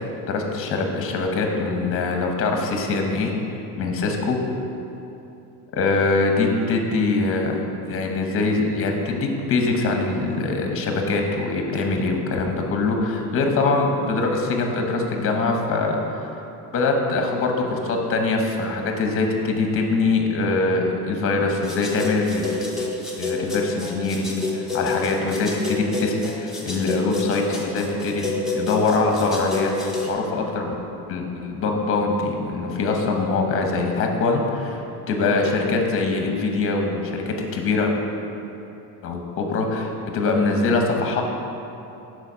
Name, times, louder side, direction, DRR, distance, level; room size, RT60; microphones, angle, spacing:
voice 1, 0.3-3.3 3.8-4.4 5.7-16.3 16.7-22.9 23.2-28.2 28.5-30.7 31.1-34.8 35.1-37.9 39.0-41.2, left 3 dB, 30° left, 2 dB, 0.8 m, -23 dB
sound 1, 21.5-30.1, left 2 dB, ahead, 0.3 m, -29 dB
6.9 x 4.5 x 5.5 m, 2.9 s
cardioid pair, 160°, 44 cm